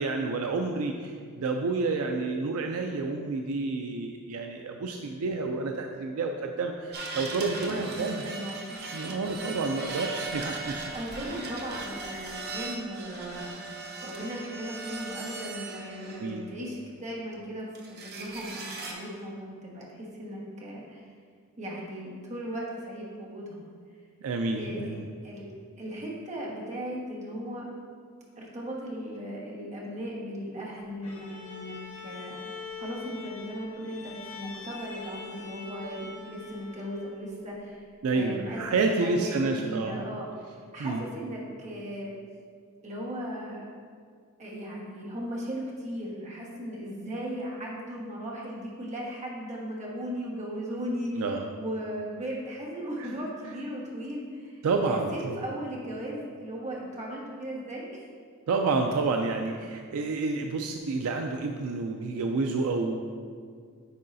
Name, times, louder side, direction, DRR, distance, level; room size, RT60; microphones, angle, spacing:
voice 1, 0.0-8.2 8.9-10.8 16.2-16.5 24.2-25.0 38.0-40.0 40.8-41.0 51.1-51.5 53.0-53.1 54.6-55.4 58.5-63.0, right 3 dB, 70° right, 4 dB, 0.4 m, -29 dB
sound 1, 6.9-16.5 17.7-18.9, right 3 dB, 50° right, 0.8 m, -38 dB
voice 2, 7.6-9.0 10.9-13.8 14.0-21.1 21.6-23.7 24.5-24.9 25.2-25.4 25.8-27.7 28.4-31.8 32.0-37.9 38.1-38.6 38.9-40.3 40.7-42.1 42.8-43.6 44.4-51.2 51.6-54.6 54.9-58.0, equal, 35° right, -4 dB, 1.3 m, -37 dB
Bowed string instrument, 31.0-37.3, left 5 dB, 85° left, 1.7 m, -43 dB
9.5 x 4.6 x 2.6 m, 2.1 s
head